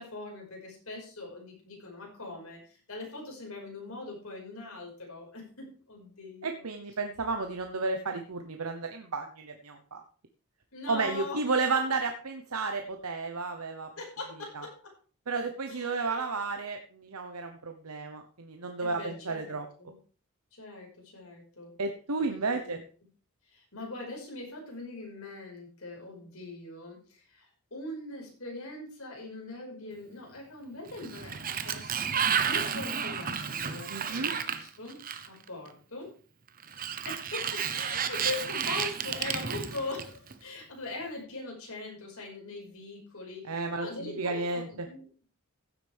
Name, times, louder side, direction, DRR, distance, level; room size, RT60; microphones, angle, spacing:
voice 1, 0.0-6.7 10.7-11.4 14.0-14.9 15.7-16.3 18.8-19.9 20.5-21.7 22.2-22.8 23.5-31.9 32.4-35.0 35.3-36.1 37.1-45.2, left 2 dB, 70° left, 0 dB, 5.4 m, -41 dB
voice 2, 6.4-10.0 10.9-13.9 14.5-14.6 15.3-19.7 21.8-22.8 33.9-34.3 43.5-44.9, right 4 dB, 90° right, 5 dB, 1.0 m, -32 dB
Sliding door, 30.9-35.5 36.6-40.3, right 7 dB, 40° right, 0.9 m, -32 dB
15.5 x 8.1 x 3.5 m, 0.40 s
head